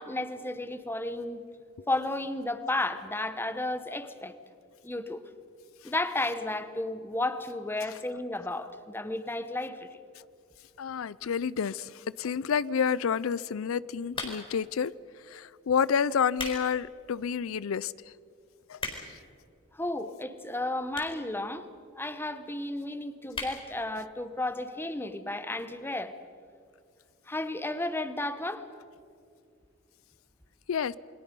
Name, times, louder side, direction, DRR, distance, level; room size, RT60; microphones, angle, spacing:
voice 1, 0.0-1.4 1.9-4.4 4.8-5.2 5.8-9.9 11.2-11.3 19.7-21.7 21.9-26.1 27.3-28.6, left 2 dB, 10° left, 11 dB, 1.0 m, -33 dB
voice 2, 10.8-14.9 15.2-18.1 18.7-19.2 30.7-31.0, left 7 dB, 85° left, 20 dB, 0.4 m, -29 dB
sound 1, 14.1-14.7 15.4-15.6 16.1-16.6 17.1-17.2 17.8-17.9 18.1-18.2 18.4-19.3 20.1-20.2 20.9-21.3 21.6-21.7 21.8-21.9 22.2-22.3 22.6-22.8 23.3-23.6 24.0-24.1 24.3-24.4, left 3 dB, 25° left, 4.2 m, -37 dB
28.5 x 22.5 x 5.4 m, 2.4 s
head